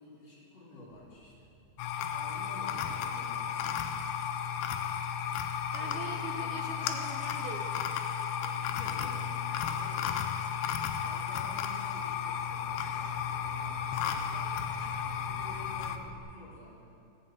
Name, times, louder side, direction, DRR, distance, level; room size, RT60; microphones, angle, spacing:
voice 1, 0.0-1.5 2.1-4.1 5.7-6.7 8.4-10.7 11.0-14.7 15.0-17.0, left 1 dB, 45° left, -6 dB, 2.9 m, -51 dB
sound 1, 0.9-7.6 8.2-16.2, right 3 dB, 90° right, 3.3 m, -55 dB
sound 2, 1.8-16.0, left 8 dB, 85° left, 2.3 m, -34 dB
voice 2, 5.7-7.7, right 4 dB, 70° right, 1 dB, 2.7 m, -42 dB
15.0 x 7.6 x 7.4 m, 2.6 s
omnidirectional pair, 4.9 m